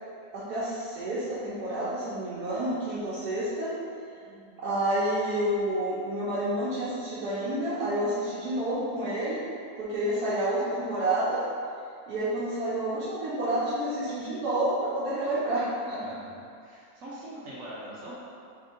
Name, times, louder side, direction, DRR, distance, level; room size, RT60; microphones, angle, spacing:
voice 1, 0.3-3.7 4.4-9.4 9.8-11.4 12.1-16.2, right 1 dB, 90° right, -11 dB, 1.3 m, -29 dB
voice 2, 16.0-18.1, right 1 dB, 65° right, -9 dB, 1.1 m, -43 dB
3.5 x 2.6 x 3.7 m, 2.4 s
omnidirectional pair, 1.6 m